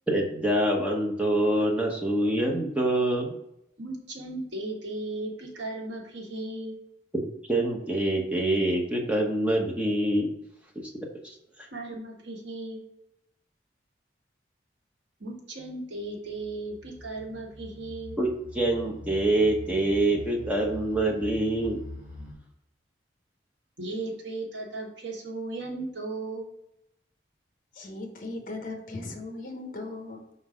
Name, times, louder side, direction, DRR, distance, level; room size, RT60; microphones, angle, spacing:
voice 1, 0.1-3.3 7.1-10.3 10.8-10.9 11.2-11.3 18.2-21.8, right 1 dB, 5° right, 0.9 m, -25 dB
voice 2, 3.8-6.8 11.7-12.9 15.2-18.2 23.8-26.5, right 2 dB, 75° right, 1.4 m, -36 dB
sound 1, 16.1-22.3, left 2 dB, 25° right, 2.5 m, -44 dB
voice 3, 27.7-30.3, left 2 dB, 45° left, 1.0 m, -38 dB
5.4 x 3.9 x 5.0 m
head